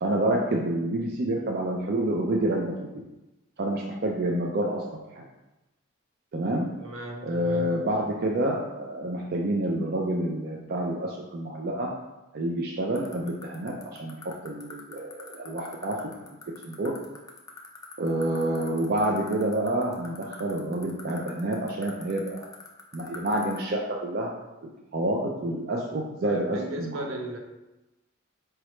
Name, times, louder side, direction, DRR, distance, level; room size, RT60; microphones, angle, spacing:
voice 1, 0.0-2.9 3.6-4.8 5.1-5.2 6.3-6.7 7.2-11.9 12.3-13.7 14.0-14.2 14.4-16.0 16.6-16.9 18.0-22.4 22.9-24.3 24.6-27.1, right 1 dB, 50° right, -1 dB, 0.4 m, -28 dB
voice 2, 6.8-7.7 26.2-27.4, right 1 dB, 75° right, 1 dB, 0.7 m, -36 dB
sound 1, 13.0-23.6, left 5 dB, 15° left, 0.4 m, -42 dB
4.7 x 3.0 x 3.1 m, 1.0 s
head